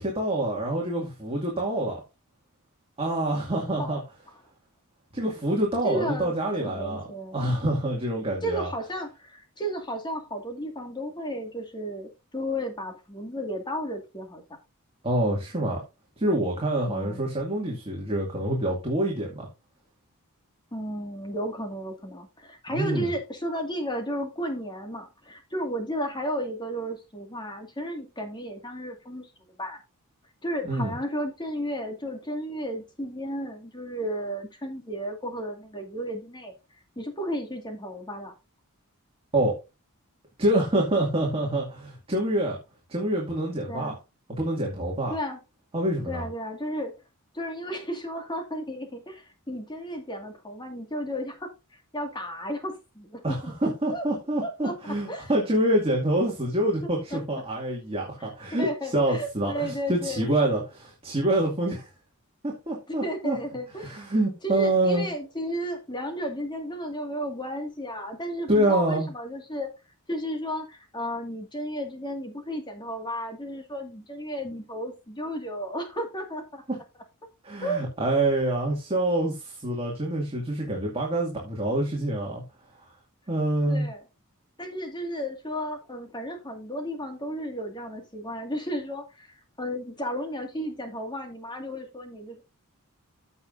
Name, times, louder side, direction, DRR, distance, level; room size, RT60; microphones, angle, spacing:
voice 1, 0.0-2.0 3.0-4.0 5.1-7.0 7.3-8.7 15.0-15.8 16.2-19.5 22.7-23.1 30.7-30.9 39.3-39.5 40.4-42.6 42.9-43.9 44.4-45.1 45.7-46.3 53.2-53.4 53.6-61.9 62.4-63.4 63.8-65.1 68.5-69.1 76.7-76.8 77.4-82.4 83.3-83.9, right 1 dB, 25° right, 2.2 m, -26 dB
voice 2, 5.8-7.4 8.4-14.4 16.8-17.2 20.7-29.3 29.6-29.8 30.4-36.5 37.0-38.3 43.7-44.0 45.1-45.4 46.1-46.9 47.3-51.5 51.9-53.5 53.9-54.0 54.4-54.8 55.1-55.3 57.1-57.4 58.2-60.2 62.9-64.1 64.4-69.7 70.1-76.6 77.6-77.8 83.7-84.0 84.6-92.4, equal, 20° left, 2.1 m, -33 dB
15.0 x 5.7 x 2.6 m
head